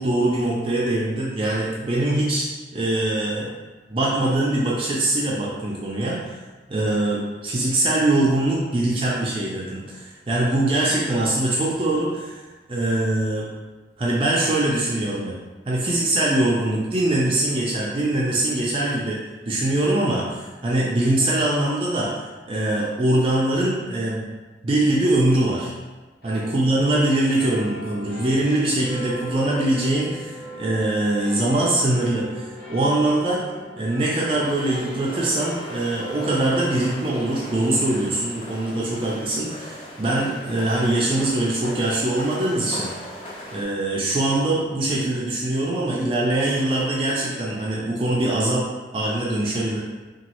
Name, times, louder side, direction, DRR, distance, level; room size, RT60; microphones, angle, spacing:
voice 1, 0.0-2.5 2.7-3.5 3.9-6.4 6.7-13.5 14.0-15.4 15.7-19.2 19.5-22.1 22.5-24.4 24.6-25.7 26.2-33.4 33.8-42.9 43.5-48.7 48.9-49.8, right 1 dB, 30° right, -5 dB, 0.3 m, -22 dB
sound 1, 26.2-42.9, equal, 65° left, 0.8 m, -40 dB
sound 2, 34.4-43.6, equal, 30° left, 0.5 m, -39 dB
2.9 x 2.3 x 2.9 m, 1.3 s
head